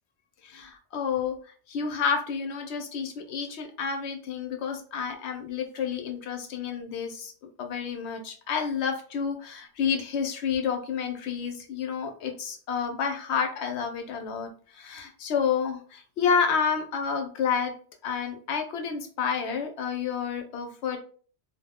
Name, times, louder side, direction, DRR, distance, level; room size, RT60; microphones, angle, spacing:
voice 1, 0.4-1.4 1.7-7.3 7.6-17.7 18.0-21.0, left 6 dB, 75° left, 4 dB, 0.9 m, -29 dB
2.6 x 2.1 x 3.5 m, 0.43 s
omnidirectional pair, 1.1 m